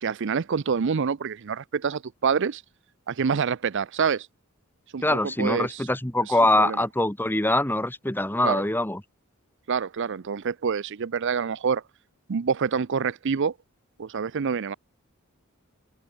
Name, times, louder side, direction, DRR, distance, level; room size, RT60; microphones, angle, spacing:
voice 1, 0.0-2.6 3.1-4.3 4.9-5.8 6.3-6.8 8.4-8.6 9.7-11.8 12.3-13.5 14.0-14.8, right 6 dB, 60° right, 0.5 m, -27 dB
voice 2, 5.0-9.0, left 1 dB, 10° left, 1.6 m, -23 dB
head